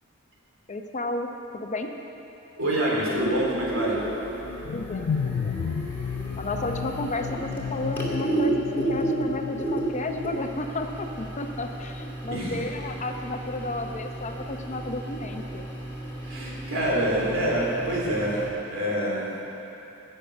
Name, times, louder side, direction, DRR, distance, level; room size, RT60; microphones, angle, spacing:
voice 1, 0.7-1.3 1.5-2.0 4.7-5.7 6.4-15.7, left 2 dB, 35° left, 4 dB, 0.8 m, -32 dB
voice 2, 2.6-4.0 12.3-12.6 16.2-18.4 18.7-19.3, right 1 dB, 75° right, -5 dB, 3.6 m, -26 dB
sound 1, 3.1-18.5, right 2 dB, 10° left, 2.2 m, -33 dB
sound 2, 4.4-10.7, left 6 dB, 85° left, 0.4 m, -33 dB
15.0 x 6.7 x 8.2 m, 2.9 s
head